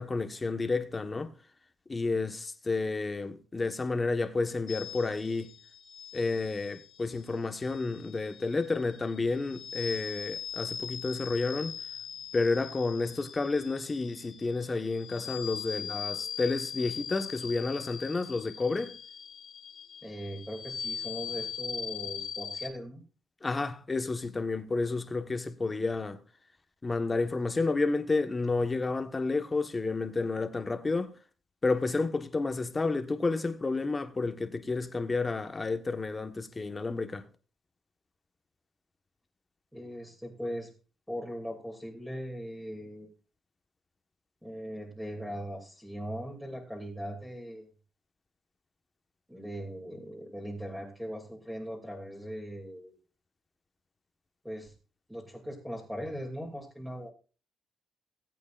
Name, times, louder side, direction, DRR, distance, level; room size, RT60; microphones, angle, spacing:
voice 1, 0.0-1.3 1.9-5.5 6.1-11.7 12.3-18.9 23.4-26.2 26.8-31.2 31.6-37.2, left 3 dB, 25° left, 1.4 m, -30 dB
sound 1, 4.7-22.7, left 7 dB, 65° left, 1.7 m, -41 dB
voice 2, 20.0-23.0 39.7-40.7 41.1-43.1 44.4-47.7 49.3-52.9 54.4-54.7 55.1-57.1, equal, 5° right, 2.7 m, -39 dB
19.0 x 8.4 x 2.5 m
cardioid pair, 90°, 0 cm